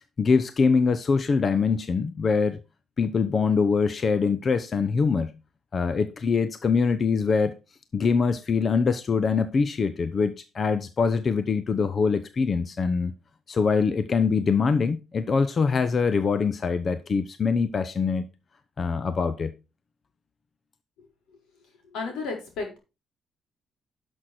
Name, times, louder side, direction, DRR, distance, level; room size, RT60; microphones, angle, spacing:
voice 1, 0.2-2.6 3.0-5.3 5.7-7.6 7.9-13.1 13.5-18.3 18.8-19.5, left 5 dB, 45° left, 0.8 m, -23 dB
voice 2, 21.9-22.8, left 4 dB, 90° left, 4.7 m, -33 dB
11.5 x 6.4 x 4.4 m
cardioid pair, 90°, 0 cm